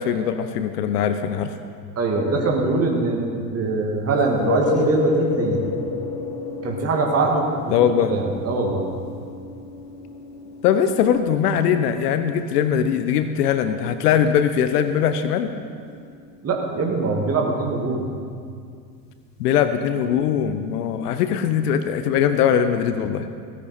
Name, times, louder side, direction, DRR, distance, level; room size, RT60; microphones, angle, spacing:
voice 1, 0.0-1.5 7.7-8.1 10.6-15.5 19.4-23.3, left 8 dB, 70° left, 10 dB, 0.8 m, -21 dB
voice 2, 2.0-5.7 6.6-8.8 16.4-18.0, right 3 dB, 30° right, 0 dB, 2.0 m, -23 dB
sound 1, 4.2-15.8 20.0-20.1, left 4 dB, 35° left, 2.6 m, -31 dB
16.5 x 10.5 x 4.3 m, 2.3 s
hypercardioid pair, 75°, 49 cm